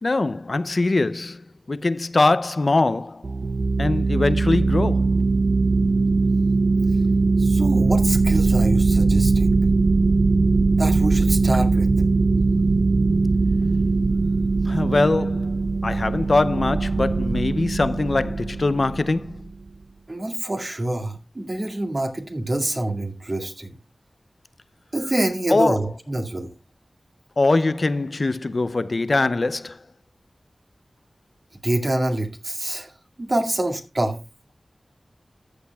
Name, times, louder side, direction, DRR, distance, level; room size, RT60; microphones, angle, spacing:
voice 1, 0.0-3.2 3.8-5.1 14.7-15.6 15.8-19.4 25.5-25.8 27.4-29.8, left 2 dB, 55° left, 0.5 m, -22 dB
sound 1, 3.2-19.5, right 3 dB, 70° right, 0.4 m, -20 dB
voice 2, 7.4-9.5 10.7-11.9 20.1-23.8 24.9-26.5 31.6-34.2, right 1 dB, 45° right, 2.1 m, -26 dB
14.0 x 7.9 x 2.3 m
wide cardioid pair, 55°, 0 cm